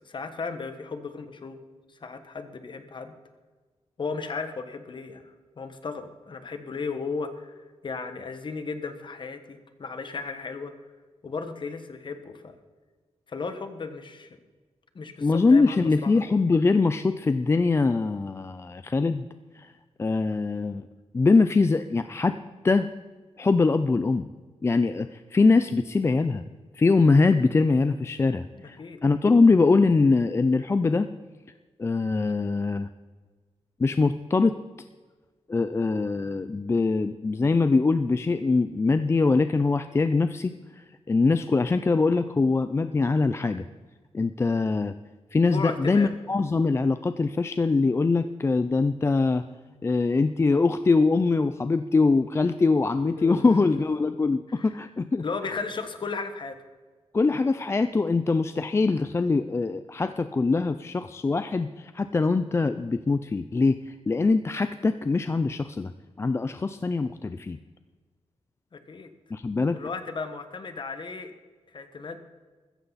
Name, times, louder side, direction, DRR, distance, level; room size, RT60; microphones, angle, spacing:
voice 1, 0.0-1.6 2.0-3.1 4.0-7.5 7.8-10.7 11.2-12.5 13.3-14.4 14.9-16.2 28.5-29.0 45.5-46.1 53.2-53.7 54.5-54.7 55.2-56.6 68.7-69.1 69.7-71.3 71.7-72.2, left 4 dB, 45° left, 8 dB, 1.4 m, -35 dB
voice 2, 15.2-19.3 19.6-19.7 20.0-20.9 21.1-22.4 22.6-22.9 23.4-24.3 24.6-26.4 26.7-31.1 31.8-32.9 33.8-34.6 35.5-43.6 44.1-44.9 45.3-49.4 49.8-55.2 57.1-65.9 66.2-67.6 69.3-69.8, left 3 dB, 25° left, 11 dB, 0.4 m, -23 dB
15.0 x 14.0 x 4.1 m, 1.4 s
wide cardioid pair, 165°, 11 cm